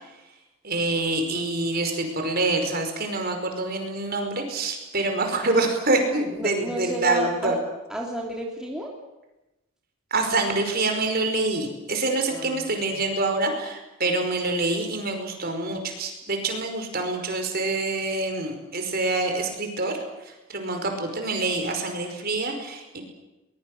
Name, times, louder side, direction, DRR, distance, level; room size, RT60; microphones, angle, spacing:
voice 1, 0.6-7.6 10.1-23.0, right 2 dB, 45° right, 4 dB, 5.2 m, -26 dB
voice 2, 6.4-7.6 7.9-8.9 12.3-12.6, equal, 5° right, -2 dB, 3.1 m, -31 dB
23.0 x 21.5 x 8.0 m, 0.99 s
head